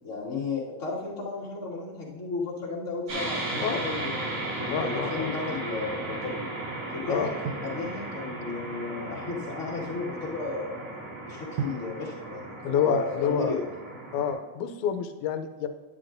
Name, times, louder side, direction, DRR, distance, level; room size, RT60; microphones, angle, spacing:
voice 1, 0.0-4.2 4.6-6.5 6.9-10.8 11.3-13.6, left 3 dB, 30° left, -8 dB, 2.1 m, -34 dB
sound 1, 3.1-14.3, right 2 dB, 50° right, 3.0 m, -35 dB
voice 2, 4.7-5.3 7.1-7.3 12.6-13.6 14.1-15.7, left 7 dB, 80° left, 7 dB, 2.0 m, -28 dB
Drum, 7.5-9.0 11.6-13.7, right 6 dB, 75° right, 1.7 m, -39 dB
10.5 x 9.7 x 2.6 m, 1.2 s
omnidirectional pair, 3.5 m